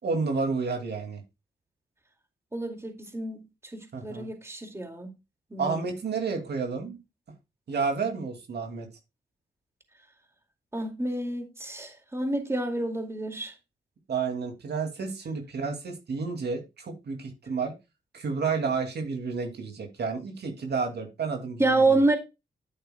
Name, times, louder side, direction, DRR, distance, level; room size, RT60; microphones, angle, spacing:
voice 1, 0.0-1.2 3.9-4.3 5.6-7.0 7.7-8.9 14.1-17.7 18.1-22.0, right 5 dB, 70° right, 2.4 m, -30 dB
voice 2, 2.5-3.4 3.7-5.1 5.5-5.9 10.7-13.5 21.6-22.2, right 2 dB, 15° right, 2.2 m, -28 dB
10.0 x 8.4 x 2.2 m
cardioid pair, 80°, 18 cm